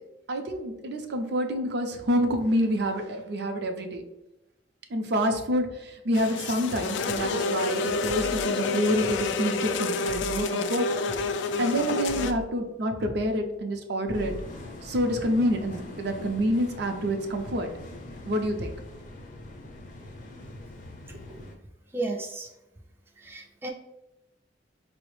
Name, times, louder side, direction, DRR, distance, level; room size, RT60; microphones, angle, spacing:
voice 1, 0.3-4.0 4.9-11.0 11.6-14.3 14.8-17.7 18.3-18.7, equal, 65° right, 4 dB, 0.5 m, -27 dB
sound 1, 6.1-12.3, left 3 dB, 90° left, 0.3 m, -29 dB
sound 2, 7.1-7.3 8.1-8.5 9.1-9.3 10.1-10.5 11.1-11.3 12.1-12.5 13.1-13.3 14.1-14.5, left 1 dB, 85° right, 0.8 m, -40 dB
sound 3, 14.1-21.5, left 1 dB, 45° left, 0.6 m, -43 dB
voice 2, 21.9-22.5 23.2-23.7, right 2 dB, 15° right, 1 dB, 0.3 m, -33 dB
4.7 x 2.1 x 3.0 m, 0.93 s
head